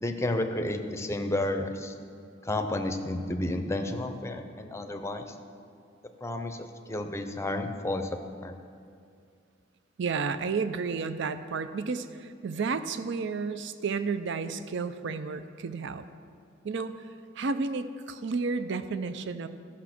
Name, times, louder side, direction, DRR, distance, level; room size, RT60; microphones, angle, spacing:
voice 1, 0.0-1.9 2.5-5.3 6.2-8.5, left 1 dB, 15° left, 6 dB, 0.6 m, -31 dB
voice 2, 10.0-16.0 16.6-17.1 17.4-19.5, right 4 dB, 65° right, 11 dB, 0.5 m, -32 dB
12.5 x 5.9 x 6.0 m, 2.4 s
head